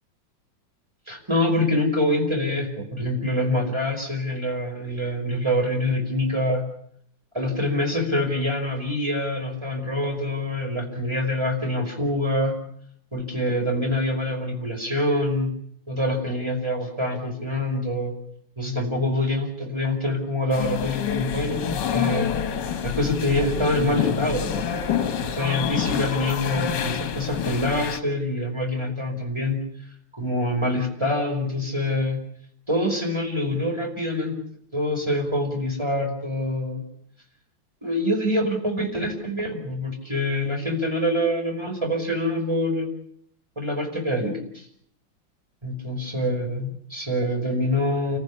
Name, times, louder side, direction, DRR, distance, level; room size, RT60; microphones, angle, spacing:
voice 1, 1.1-6.6 7.3-12.6 13.1-15.5 15.9-18.1 18.6-22.3 22.8-24.6 25.4-29.6 30.2-32.2 32.7-34.4 34.7-36.8 37.8-42.9 43.6-44.7 45.6-48.2, left 1 dB, 15° right, 1 dB, 5.4 m, -25 dB
sound 1, 20.5-28.0, left 8 dB, 70° left, 1.8 m, -27 dB
29.0 x 15.0 x 8.6 m, 0.68 s
omnidirectional pair, 2.0 m